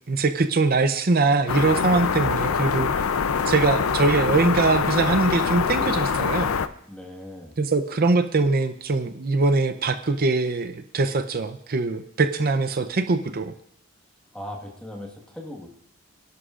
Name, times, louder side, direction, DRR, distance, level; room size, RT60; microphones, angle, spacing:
voice 1, 0.1-3.0 3.5-6.6 7.6-13.5, right 3 dB, 45° right, 10 dB, 0.6 m, -22 dB
sound 1, 1.5-6.7, left 6 dB, 85° left, 0.6 m, -24 dB
voice 2, 6.9-7.6 14.3-15.7, left 1 dB, 5° left, 0 dB, 1.5 m, -38 dB
27.5 x 11.5 x 2.5 m, 0.68 s
head